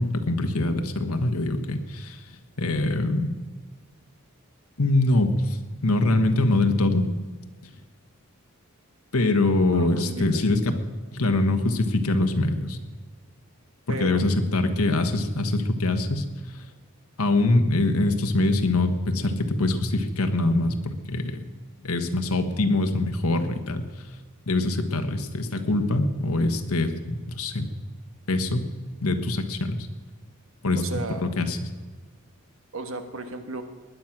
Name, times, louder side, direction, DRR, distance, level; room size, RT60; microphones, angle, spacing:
voice 1, 0.0-2.2 2.6-3.3 4.8-5.6 5.8-7.1 7.6-7.7 9.1-10.8 11.1-12.8 13.9-16.6 17.2-21.4 21.8-23.9 24.5-27.7 28.3-28.7 29.0-29.9 30.6-30.8 31.2-31.7, left 2 dB, 90° left, 7 dB, 1.3 m, -24 dB
voice 2, 9.7-10.4 13.9-14.2 30.8-31.3 32.7-33.6, right 3 dB, 65° right, 7 dB, 1.5 m, -34 dB
19.5 x 10.5 x 6.0 m, 1.4 s
head